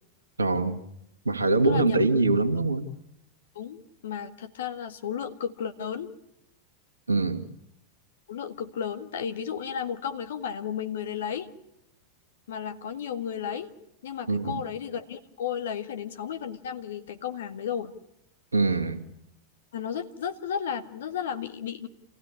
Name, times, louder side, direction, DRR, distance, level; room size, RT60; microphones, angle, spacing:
voice 1, 0.4-0.8 1.3-2.8 7.1-7.5 14.3-14.6 18.5-19.0, right 3 dB, 75° right, 7 dB, 1.9 m, -23 dB
voice 2, 1.7-2.0 3.6-6.1 8.3-11.5 12.5-13.7 14.0-17.9 19.7-21.9, left 8 dB, 60° left, 7 dB, 1.8 m, -33 dB
27.5 x 16.5 x 10.0 m, 0.79 s
figure-of-eight pair, 90°, 0 cm